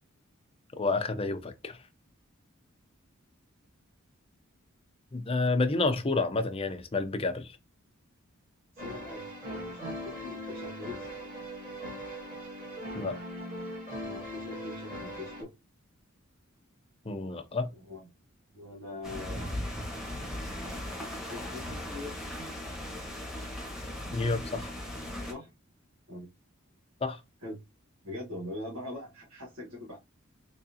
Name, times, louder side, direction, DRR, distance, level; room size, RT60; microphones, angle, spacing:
voice 1, 0.8-1.8 5.1-7.6 12.9-13.2 17.0-17.7 24.1-24.7 27.0-27.2, left 3 dB, 30° left, 0.6 m, -29 dB
voice 2, 8.7-11.1 14.0-15.5 17.8-18.1 18.5-19.5 21.3-22.6 25.2-25.5 26.1-26.3 27.4-27.6 28.0-30.0, left 2 dB, 85° right, 1.5 m, -42 dB
sound 1, 8.8-15.4, equal, 40° right, 1.8 m, -40 dB
sound 2, 19.0-25.3, left 1 dB, ahead, 1.1 m, -38 dB
3.7 x 3.1 x 2.7 m
head